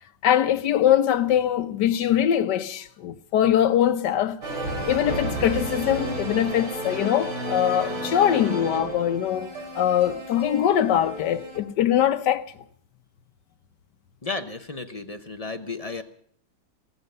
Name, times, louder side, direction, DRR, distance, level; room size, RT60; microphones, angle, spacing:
voice 1, 0.2-4.4 4.9-12.4, left 10 dB, 80° left, 1.5 m, -22 dB
sound 1, 4.4-11.6, right 1 dB, 85° right, 4.2 m, -32 dB
voice 2, 14.2-16.0, left 3 dB, 30° left, 0.7 m, -33 dB
17.0 x 15.5 x 5.5 m
omnidirectional pair, 1.8 m